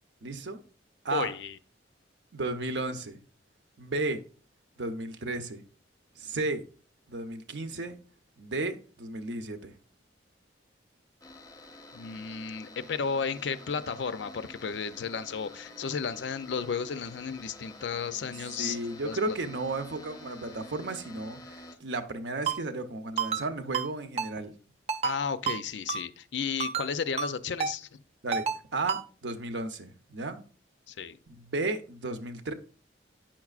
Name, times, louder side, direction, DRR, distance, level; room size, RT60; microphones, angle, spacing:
voice 1, 0.2-0.6 1.0-1.3 2.3-3.2 3.8-4.2 4.8-5.6 6.2-6.6 7.1-8.0 8.4-9.7 18.3-24.5 28.2-28.5 28.7-30.4 31.3-32.5, right 2 dB, 70° right, 0.7 m, -34 dB
voice 2, 1.1-1.6 11.9-18.8 19.1-19.2 25.0-27.9 30.9-31.2, left 6 dB, 75° left, 0.5 m, -33 dB
sound 1, 11.2-21.8, left 2 dB, 20° left, 0.6 m, -49 dB
Ringtone, 22.5-22.6 23.2-23.4 23.7-23.9 24.2-24.3 24.9-25.2 25.5-25.6 25.9-26.0 26.6-26.9 27.2-27.3 27.6-27.7 28.3-28.6 28.9-29.0, right 6 dB, 35° right, 0.4 m, -29 dB
8.7 x 5.9 x 2.4 m
head